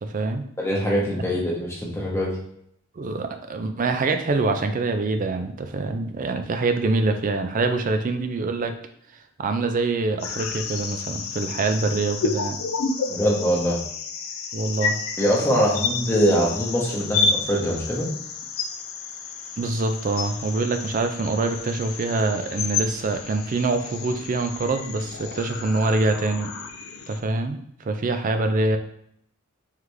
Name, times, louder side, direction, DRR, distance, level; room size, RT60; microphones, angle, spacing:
voice 1, 0.0-0.5 3.0-8.8 9.4-12.6 14.5-15.0 19.6-26.5 27.1-28.8, right 3 dB, 40° right, 7 dB, 0.4 m, -25 dB
voice 2, 0.6-2.3 13.1-13.8 15.2-18.1, equal, 10° left, -3 dB, 0.9 m, -23 dB
sound 1, 10.2-27.2, left 5 dB, 70° left, 0.4 m, -31 dB
3.7 x 3.3 x 3.1 m, 0.70 s
head